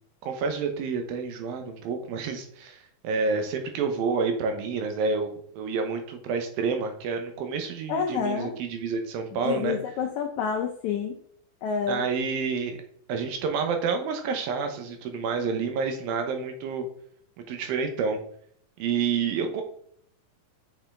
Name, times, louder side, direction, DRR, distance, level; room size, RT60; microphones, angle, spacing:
voice 1, 0.2-9.8 11.9-12.8 13.1-16.9 17.5-18.2 18.8-19.6, right 5 dB, 80° right, 6 dB, 2.8 m, -29 dB
voice 2, 7.9-8.6 9.4-11.2 11.6-12.0, left 6 dB, 80° left, 3 dB, 1.6 m, -28 dB
6.9 x 5.6 x 3.7 m, 0.63 s
omnidirectional pair, 4.2 m